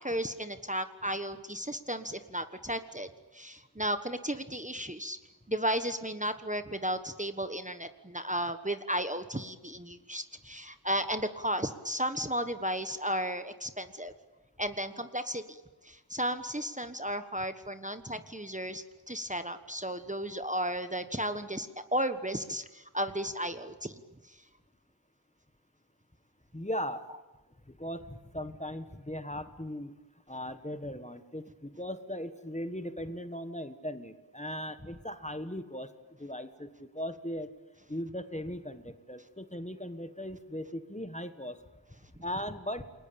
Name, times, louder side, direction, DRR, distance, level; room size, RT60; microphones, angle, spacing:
voice 1, 0.0-5.2 5.5-14.1 14.6-24.4, equal, 15° right, 9 dB, 1.3 m, -34 dB
voice 2, 26.5-27.1 27.7-29.9 30.3-35.9 36.2-37.5 37.9-41.6 42.2-42.9, equal, 15° left, 9 dB, 1.5 m, -38 dB
28.5 x 21.5 x 8.7 m, 1.1 s
wide cardioid pair, 55°, 46 cm